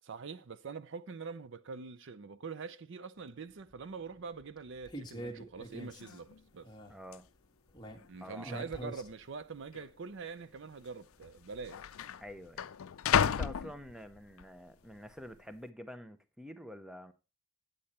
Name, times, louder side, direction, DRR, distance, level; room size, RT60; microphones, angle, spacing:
voice 1, 0.0-6.7 8.1-11.8 13.6-13.7, right 5 dB, 55° right, 0.5 m, -44 dB
sound 1, 3.2-3.3 3.7-3.8 4.1-6.3 6.6-7.0 7.2-7.3 7.7-9.1 9.4-9.8 10.5-10.6, right 1 dB, 20° left, 1.4 m, -45 dB
sound 2, 5.7-5.8 6.0-6.4 7.1-7.2 8.0-8.5 8.7-8.9 9.7-9.9 10.9-11.0 11.2-14.4 14.9-15.3, left 8 dB, 70° left, 0.4 m, -34 dB
voice 2, 6.9-7.3 8.2-8.6 12.2-12.7 13.1-17.1, equal, 5° right, 0.6 m, -47 dB
8.7 x 8.5 x 4.3 m
head